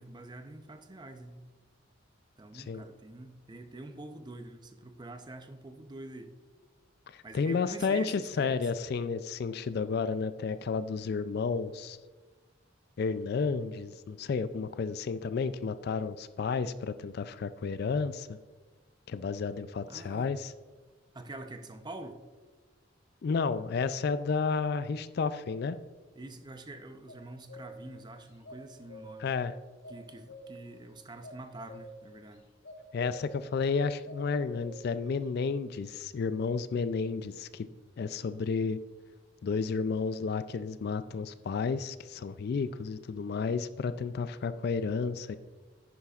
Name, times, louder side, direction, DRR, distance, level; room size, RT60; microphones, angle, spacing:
voice 1, 0.0-1.4 2.4-6.3 7.2-8.7 19.9-20.3 21.1-22.2 26.1-29.3 29.9-32.4, right 2 dB, 25° right, 7 dB, 0.6 m, -46 dB
voice 2, 7.1-12.0 13.0-18.4 19.1-20.5 23.2-25.8 29.2-29.5 32.9-37.7 38.0-38.8 39.4-45.4, left 5 dB, 55° left, 13 dB, 0.4 m, -32 dB
sound 1, 27.1-27.9 28.4-29.4 29.8-30.8 31.2-32.3 32.6-32.8 33.1-33.6 34.0-35.0, equal, 80° left, 1.4 m, -48 dB
10.5 x 10.0 x 2.4 m, 1.3 s
head